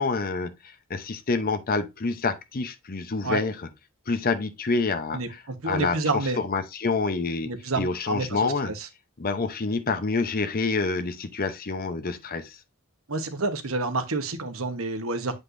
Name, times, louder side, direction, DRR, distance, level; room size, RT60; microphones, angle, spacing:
voice 1, 0.0-3.7 4.1-7.5 7.8-8.7 9.2-12.6, left 4 dB, 45° left, 0.8 m, -27 dB
voice 2, 5.1-6.4 7.4-8.9 13.1-15.3, right 3 dB, 75° right, 1.1 m, -29 dB
8.0 x 5.4 x 2.6 m
head